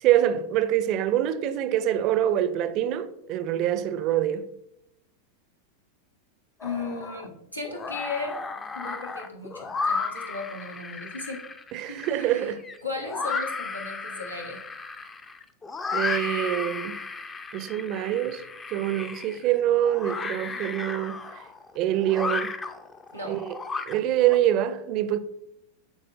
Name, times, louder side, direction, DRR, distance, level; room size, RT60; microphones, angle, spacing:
voice 1, 0.0-4.5 11.7-12.6 15.9-16.9 17.5-18.4 18.7-21.2 21.8-22.5 23.3-23.5 23.9-25.2, right 12 dB, 40° right, 0.5 m, -25 dB
voice 2, 6.6-8.4 8.7-11.4 11.8-12.5 12.8-14.6 20.4-20.7 23.1-23.3, left 3 dB, 90° left, 1.4 m, -36 dB
sound 1, 6.6-7.3 7.6-24.4, left 4 dB, 20° left, 0.5 m, -34 dB
11.0 x 4.3 x 2.5 m
figure-of-eight pair, 90°, 0 cm